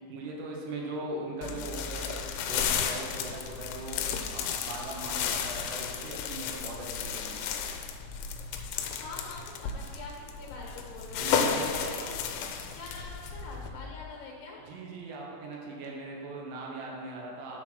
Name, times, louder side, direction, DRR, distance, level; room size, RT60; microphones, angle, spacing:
voice 1, 0.0-4.0 4.3-7.4 11.1-11.8 14.6-17.6, right 2 dB, 75° right, -2 dB, 3.1 m, -40 dB
sound 1, 1.4-13.7, left 7 dB, 90° left, 3.0 m, -33 dB
voice 2, 9.0-10.1 10.4-11.4 11.8-12.1 12.7-14.6, left 3 dB, 70° left, -2 dB, 3.1 m, -44 dB
sound 2, 10.1-14.1, left 5 dB, 30° left, 1.9 m, -49 dB
9.5 x 4.6 x 6.2 m, 2.3 s
omnidirectional pair, 5.3 m